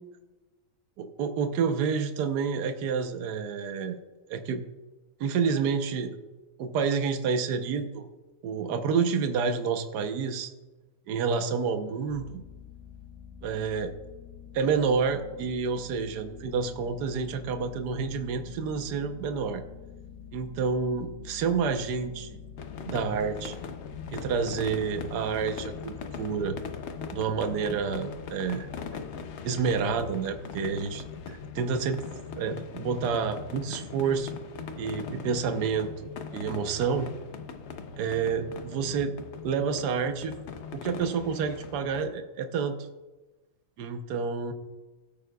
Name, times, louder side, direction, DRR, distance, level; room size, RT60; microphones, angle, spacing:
voice 1, 1.0-4.0 4.3-4.6 5.2-6.1 6.6-8.0 8.4-10.5 11.1-12.4 13.4-13.9 14.5-19.6 20.3-22.4 22.9-23.6 24.1-26.6 27.1-29.0 29.4-32.0 32.4-34.4 34.8-37.1 38.0-39.1 39.4-40.4 40.7-42.8 43.8-44.5, right 5 dB, 70° right, 7 dB, 1.4 m, -29 dB
sound 1, 12.1-31.7, left 7 dB, 80° left, 1.9 m, -47 dB
sound 2, 22.6-42.1, left 6 dB, 60° left, 0.8 m, -41 dB
17.5 x 8.7 x 2.3 m, 1.2 s
omnidirectional pair, 1.9 m